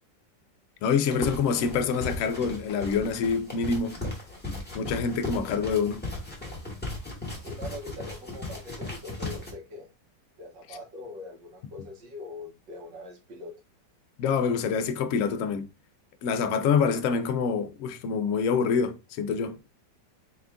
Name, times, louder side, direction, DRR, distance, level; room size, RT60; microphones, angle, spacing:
voice 1, 0.8-4.0 4.5-6.0 14.2-15.7 16.2-19.6, left 6 dB, 75° left, 0.7 m, -26 dB
sound 1, 1.1-9.5, left 2 dB, 10° left, 0.8 m, -37 dB
voice 2, 7.4-9.9 10.4-13.5, left 2 dB, 85° right, 2.0 m, -42 dB
4.3 x 2.4 x 3.3 m
omnidirectional pair, 1.9 m